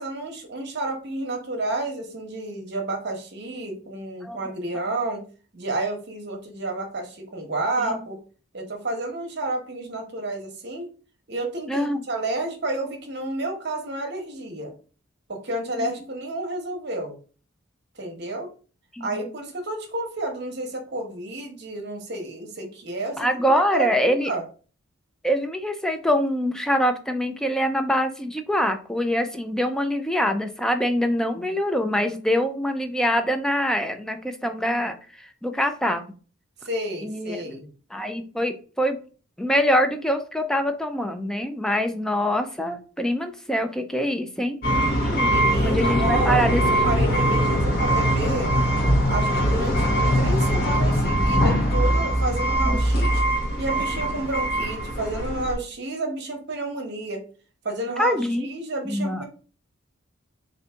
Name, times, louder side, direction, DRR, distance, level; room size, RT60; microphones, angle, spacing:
voice 1, 0.0-5.2 5.5-8.2 8.5-10.9 11.3-14.7 15.3-17.2 18.0-18.5 19.0-24.4 36.6-37.7 45.3-48.5 49.1-53.2 53.6-57.2 57.6-59.2, right 2 dB, 55° right, 3 dB, 0.9 m, -30 dB
voice 2, 11.7-12.0 15.8-15.9 18.9-19.2 23.2-24.3 25.2-36.0 37.0-37.4 37.9-39.0 39.4-44.6 45.0-46.6 52.7-52.8 58.0-58.5 58.9-59.2, equal, 5° left, 6 dB, 0.3 m, -24 dB
sound 1, 44.6-55.5, equal, 45° left, 0.9 m, -22 dB
3.9 x 2.6 x 3.4 m, 0.38 s
head